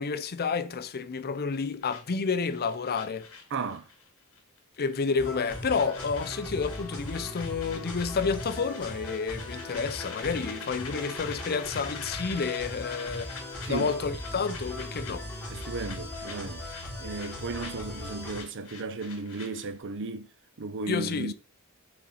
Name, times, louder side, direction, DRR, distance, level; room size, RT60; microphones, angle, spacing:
voice 1, 0.0-3.3 4.8-13.3 13.7-15.3 20.9-21.3, left 5 dB, 45° left, 0.6 m, -30 dB
sound 1, 1.8-4.1 4.3-4.6 4.9-19.8, left 5 dB, 70° left, 2.5 m, -45 dB
voice 2, 3.5-3.9 13.6-13.9 15.5-16.6 17.0-20.3 20.6-21.3, right 3 dB, 60° right, 0.6 m, -35 dB
sound 2, 5.2-18.4, left 1 dB, 5° left, 3.2 m, -39 dB
6.5 x 4.2 x 4.2 m
head